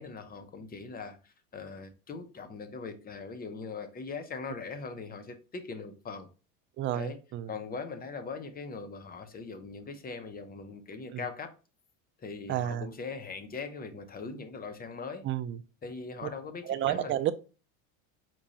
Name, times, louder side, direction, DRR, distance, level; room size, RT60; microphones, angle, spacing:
voice 1, 0.0-6.3 6.9-7.2 7.5-11.5 12.2-15.2 15.8-17.2, left 4 dB, 20° left, 0.8 m, -41 dB
voice 2, 6.8-7.5 11.1-11.2 12.5-12.9 15.2-15.6 16.7-17.3, right 12 dB, 30° right, 0.4 m, -30 dB
4.6 x 2.4 x 4.1 m
supercardioid pair, 95°, 41 cm